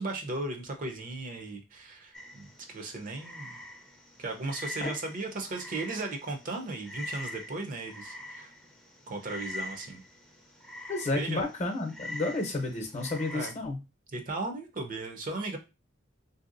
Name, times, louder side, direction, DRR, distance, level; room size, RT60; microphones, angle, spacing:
voice 1, 0.0-3.6 4.2-8.5 9.1-10.0 11.1-11.4 13.3-13.6 14.1-15.6, right 2 dB, 45° right, 4 dB, 0.6 m, -36 dB
Frog, 2.1-13.5, left 1 dB, 5° left, 0.6 m, -44 dB
voice 2, 10.9-13.8, left 2 dB, 35° left, 4 dB, 0.8 m, -31 dB
3.3 x 2.7 x 2.5 m, 0.27 s
head